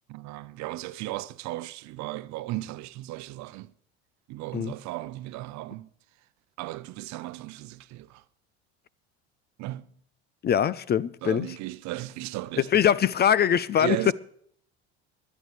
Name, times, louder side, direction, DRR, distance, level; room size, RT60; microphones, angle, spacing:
voice 1, 0.1-3.7 4.3-5.9 6.6-8.2 9.6-9.9 11.2-12.8 13.8-14.1, right 17 dB, 60° right, 0.8 m, -36 dB
voice 2, 10.4-11.5 12.7-14.0, left 9 dB, 30° left, 0.5 m, -22 dB
20.5 x 11.5 x 3.2 m
hypercardioid pair, 80°, 32 cm